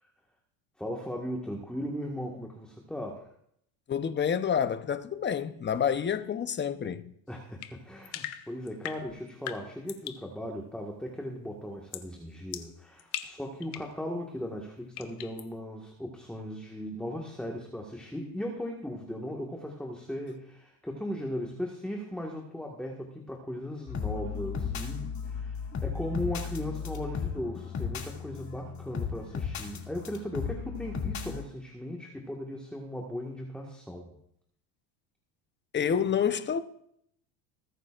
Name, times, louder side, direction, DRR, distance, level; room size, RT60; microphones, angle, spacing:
voice 1, 0.8-3.3 7.3-34.2, left 1 dB, ahead, 1.7 m, -37 dB
voice 2, 3.9-7.1 35.7-36.6, left 7 dB, 25° left, 0.9 m, -28 dB
sound 1, 7.6-10.3 11.9-12.1 12.5-14.0 15.0-15.5, left 13 dB, 75° left, 1.2 m, -40 dB
sound 2, 23.9-31.4, left 6 dB, 45° left, 2.6 m, -35 dB
21.0 x 9.2 x 2.5 m
supercardioid pair, 95°, 41 cm